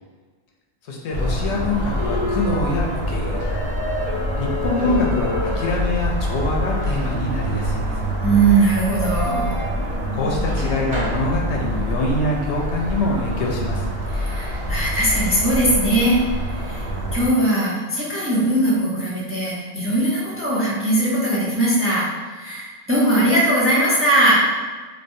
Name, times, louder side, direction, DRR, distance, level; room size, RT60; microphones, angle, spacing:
voice 1, 0.8-3.4 4.4-8.1 10.1-13.9, left 2 dB, 75° left, -1 dB, 0.9 m, -24 dB
sound 1, 1.1-17.3, equal, 60° right, 1.0 m, -26 dB
sound 2, 1.4-10.8, left 2 dB, 40° left, 0.8 m, -31 dB
voice 2, 8.2-9.5 14.1-24.4, right 1 dB, 15° right, -7 dB, 0.5 m, -20 dB
3.2 x 3.2 x 2.6 m, 1.4 s
omnidirectional pair, 1.2 m